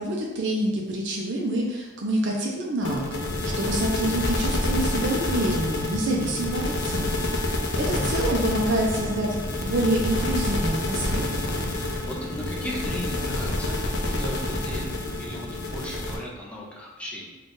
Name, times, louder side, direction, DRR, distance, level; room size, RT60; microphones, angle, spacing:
voice 1, 0.0-3.2 3.6-7.2 7.8-9.3 9.6-11.4, right 1 dB, 60° right, -2 dB, 0.5 m, -27 dB
sound 1, 2.8-16.2, left 2 dB, 55° left, 0.6 m, -28 dB
voice 2, 7.7-8.0 11.7-17.3, equal, 5° left, -4 dB, 0.5 m, -37 dB
3.8 x 2.4 x 3.7 m, 1.2 s
head